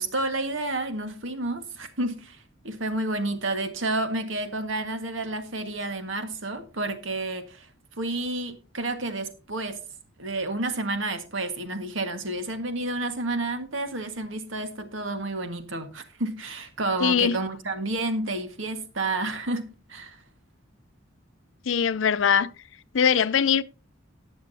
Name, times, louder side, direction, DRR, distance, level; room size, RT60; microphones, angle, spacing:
voice 1, 0.0-7.7 8.0-9.8 10.2-20.2, right 2 dB, 80° right, 1.7 m, -30 dB
voice 2, 17.0-17.4 21.7-22.5 22.9-23.6, left 7 dB, 75° left, 0.5 m, -21 dB
18.5 x 7.2 x 2.8 m
head